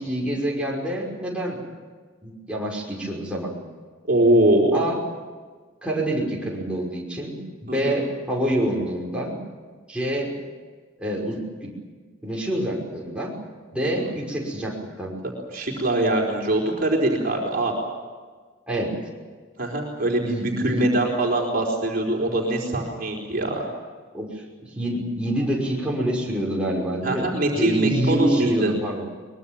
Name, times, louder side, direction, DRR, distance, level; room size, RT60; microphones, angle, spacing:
voice 1, 0.0-1.6 2.2-3.5 4.7-5.0 5.8-9.4 9.9-10.3 11.0-11.7 12.2-13.3 13.7-15.1 18.7-18.9 20.2-20.9 24.1-24.4 24.8-29.1, right 1 dB, 5° right, -4 dB, 5.6 m, -26 dB
voice 2, 4.1-4.8 7.7-8.0 13.8-13.9 15.5-17.7 19.6-23.7 27.0-28.7, right 1 dB, 45° right, -1 dB, 4.4 m, -22 dB
23.5 x 22.0 x 7.4 m, 1.5 s
head